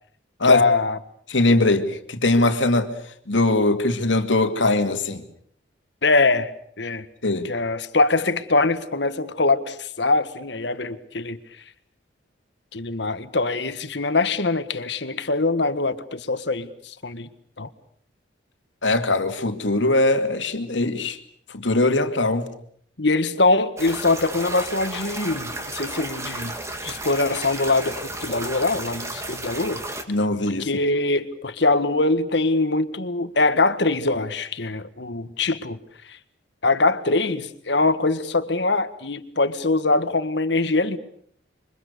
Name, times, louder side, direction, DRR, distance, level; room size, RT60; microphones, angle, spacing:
voice 1, 0.4-1.0 6.0-6.5 6.8-7.0 7.4-11.4 12.7-17.3 17.6-17.7 23.0-26.5 26.8-29.8 30.6-35.8 36.1-36.2 36.6-41.0, left 3 dB, 65° left, 1.6 m, -23 dB
voice 2, 1.3-2.9 3.3-5.2 7.2-7.5 18.8-21.2 21.5-22.5 30.1-30.7, left 2 dB, 85° left, 2.3 m, -21 dB
sound 1, 23.8-30.0, right 1 dB, 15° right, 2.6 m, -33 dB
27.5 x 24.5 x 6.8 m
head